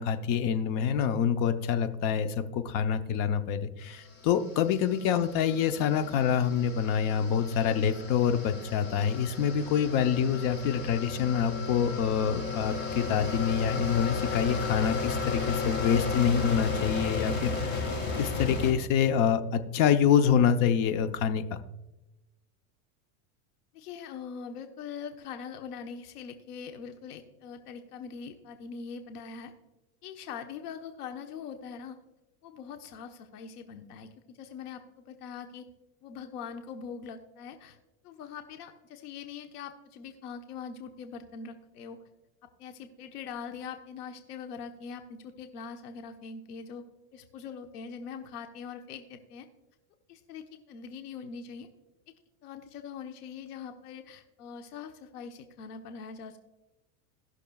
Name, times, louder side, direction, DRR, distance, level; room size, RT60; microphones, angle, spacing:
voice 1, 0.0-17.9 18.2-21.6, left 8 dB, 45° left, 9 dB, 0.8 m, -26 dB
sound 1, 4.0-18.7, left 4 dB, 25° left, 1.8 m, -34 dB
voice 2, 23.7-29.5 30.0-32.0 32.4-35.7 36.0-37.8 38.0-42.0 42.6-46.8 47.1-49.5 50.1-51.7 52.4-56.4, left 6 dB, 85° left, 6 dB, 1.2 m, -42 dB
19.0 x 6.4 x 2.3 m, 1.0 s
supercardioid pair, 140°, 45 cm